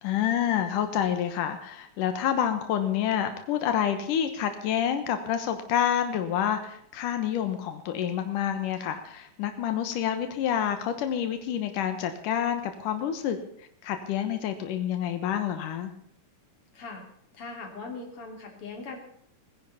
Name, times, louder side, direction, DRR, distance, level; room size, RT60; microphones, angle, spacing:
voice 1, 0.0-13.4 13.8-15.9, left 9 dB, 85° left, 8 dB, 2.8 m, -28 dB
voice 2, 16.7-17.1 17.3-19.0, left 4 dB, 45° left, 2 dB, 3.8 m, -40 dB
19.0 x 10.5 x 6.9 m, 0.66 s
omnidirectional pair, 3.6 m